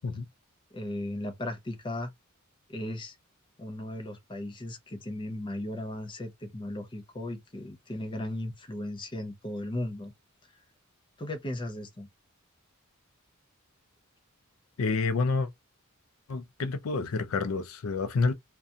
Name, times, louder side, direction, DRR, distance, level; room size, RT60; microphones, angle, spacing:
voice 1, 0.7-2.1 2.7-3.2 3.6-10.1 11.2-12.1, left 1 dB, 25° left, 0.5 m, -36 dB
voice 2, 14.8-15.5 16.3-18.3, left 4 dB, 75° left, 0.4 m, -28 dB
2.5 x 2.2 x 2.7 m
head